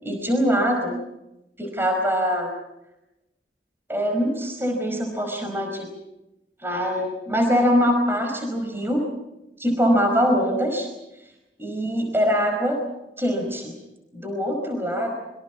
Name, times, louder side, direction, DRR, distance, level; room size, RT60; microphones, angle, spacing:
voice 1, 0.0-1.0 1.6-2.5 3.9-5.9 6.6-9.0 9.6-10.9 11.6-12.8 13.2-13.7 14.1-15.1, equal, 15° right, 3 dB, 5.0 m, -23 dB
26.5 x 24.0 x 6.0 m, 0.90 s
head